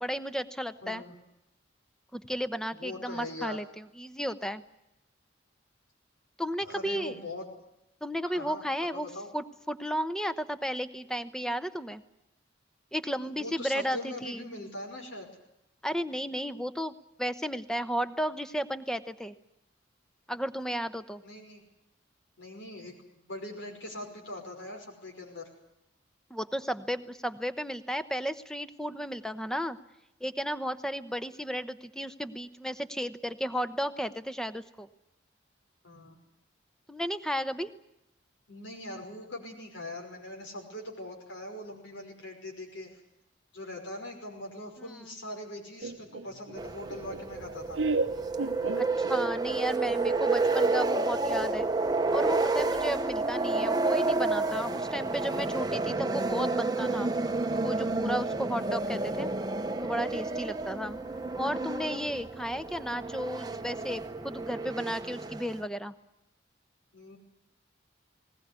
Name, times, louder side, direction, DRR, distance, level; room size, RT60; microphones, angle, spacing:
voice 1, 0.0-1.0 2.1-4.6 6.4-7.2 8.0-9.1 9.3-12.0 12.9-14.4 15.8-19.3 20.3-21.2 26.3-29.8 30.2-34.9 36.9-37.7 44.8-45.0 48.8-51.7 52.1-57.1 57.6-59.3 59.8-61.0 61.4-65.9, equal, 5° left, 11 dB, 0.9 m, -34 dB
voice 2, 0.8-1.1 2.7-3.6 6.6-7.5 8.2-8.6 8.9-9.3 13.2-15.3 21.2-21.6 22.4-25.5 35.8-36.2 38.5-43.0 43.5-47.8 66.9-67.2, left 1 dB, 75° left, 1 dB, 5.5 m, -41 dB
Laughter, 45.8-49.5, right 3 dB, 70° right, 0.8 m, -33 dB
sound 1, 46.6-65.6, right 3 dB, 20° right, 0.9 m, -30 dB
20.5 x 19.5 x 9.7 m, 0.86 s
head